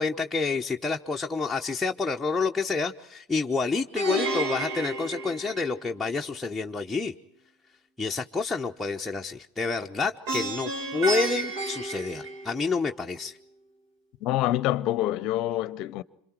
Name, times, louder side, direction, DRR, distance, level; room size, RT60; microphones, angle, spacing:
voice 1, 0.0-7.1 8.0-13.4, left 4 dB, 10° left, 1.0 m, -28 dB
Plucked string instrument, 4.0-6.1 10.3-12.9, right 2 dB, 60° right, 3.3 m, -31 dB
voice 2, 14.2-16.0, left 14 dB, 50° left, 0.8 m, -26 dB
27.5 x 26.5 x 4.6 m
hypercardioid pair, 85°, 0 cm